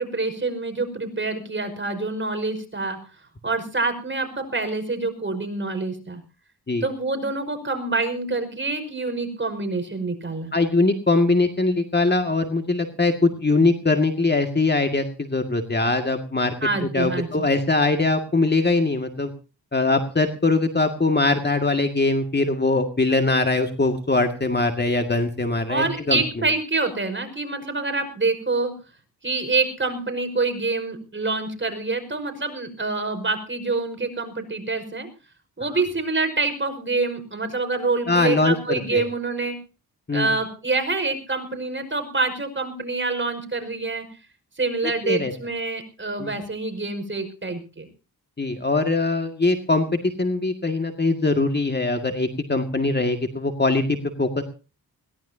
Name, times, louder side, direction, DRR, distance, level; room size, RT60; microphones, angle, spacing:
voice 1, 0.0-3.0 3.4-6.2 6.8-10.5 16.6-17.5 25.7-28.7 29.2-35.1 35.6-39.6 40.1-44.1 44.6-47.9, right 3 dB, 30° right, 7 dB, 5.4 m, -26 dB
voice 2, 10.5-16.5 16.8-19.3 19.7-26.2 38.1-39.0 40.1-40.3 44.8-45.3 46.2-46.3 48.4-54.4, left 3 dB, 25° left, 6 dB, 2.1 m, -22 dB
21.5 x 17.5 x 2.8 m, 0.35 s
cardioid pair, 75°, 38 cm